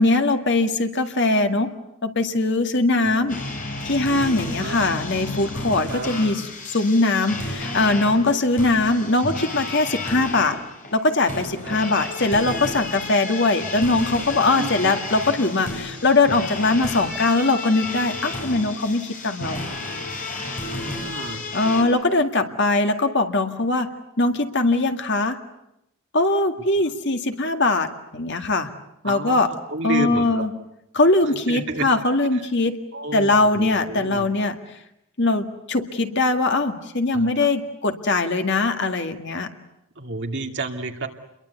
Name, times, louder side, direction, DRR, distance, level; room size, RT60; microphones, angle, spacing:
voice 1, 0.0-1.7 2.0-3.4 3.8-10.6 10.9-19.6 21.5-25.4 26.1-27.9 28.1-28.7 29.0-29.5 29.8-30.5 30.9-32.8 33.1-34.6 35.2-39.5, left 2 dB, 55° left, 6 dB, 2.0 m, -21 dB
sound 1, 3.3-21.8, left 2 dB, 35° left, 5.1 m, -32 dB
voice 2, 4.4-4.8 5.9-6.1 11.6-11.7 14.6-14.9 20.7-21.4 29.0-29.4 29.7-30.4 31.5-31.9 32.9-34.3 37.1-37.3 40.0-41.1, right 2 dB, 55° right, 4 dB, 2.5 m, -30 dB
29.0 x 22.5 x 8.2 m, 0.83 s
head